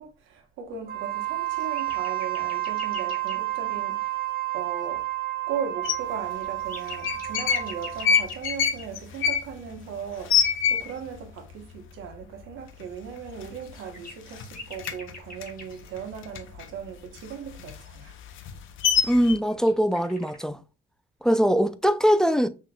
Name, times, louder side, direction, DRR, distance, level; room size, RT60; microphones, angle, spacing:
voice 1, 0.0-4.2 4.5-5.1 5.5-18.2, right 7 dB, 90° right, 1.1 m, -37 dB
Wind instrument woodwind instrument, 0.8-8.3, right 16 dB, 50° right, 1.0 m, -31 dB
sound 1, 1.2-3.4 5.9-6.0 6.2-8.8 13.4-15.8 19.5-20.4, left 3 dB, 45° left, 1.7 m, -41 dB
sound 2, 5.8-5.9 6.9-7.7 8.0-11.2 11.5-11.6 11.9-12.4 12.8-12.9 13.2-14.0 14.3-16.7 17.1-19.3, left 7 dB, 80° left, 0.7 m, -25 dB
voice 2, 19.1-20.6 21.2-22.5, equal, 5° left, 0.4 m, -22 dB
6.0 x 3.1 x 2.2 m
cardioid pair, 90°, 20 cm